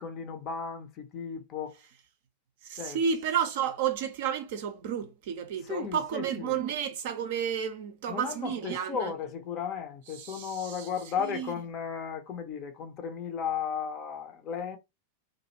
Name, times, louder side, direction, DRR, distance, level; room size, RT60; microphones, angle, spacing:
voice 1, 0.0-1.8 2.8-3.0 5.6-6.6 8.1-14.8, left 7 dB, 35° left, 0.5 m, -35 dB
voice 2, 2.6-9.1 10.2-10.9 11.2-11.5, right 8 dB, 55° right, 0.5 m, -31 dB
2.4 x 2.1 x 2.8 m
figure-of-eight pair, 90°, 0 cm